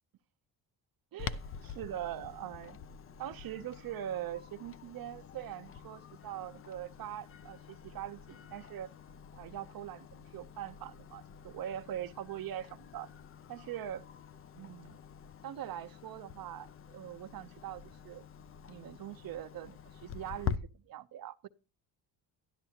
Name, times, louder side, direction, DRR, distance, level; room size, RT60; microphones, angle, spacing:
voice 1, 1.1-2.8 3.2-8.9 9.3-13.1 13.5-14.0 14.5-15.0 15.4-18.2 18.7-21.5, right 11 dB, 50° right, 0.7 m, -42 dB
Clock, 1.2-20.6, left 8 dB, 30° left, 0.4 m, -46 dB
12.0 x 12.0 x 2.8 m
cardioid pair, 150°, 44 cm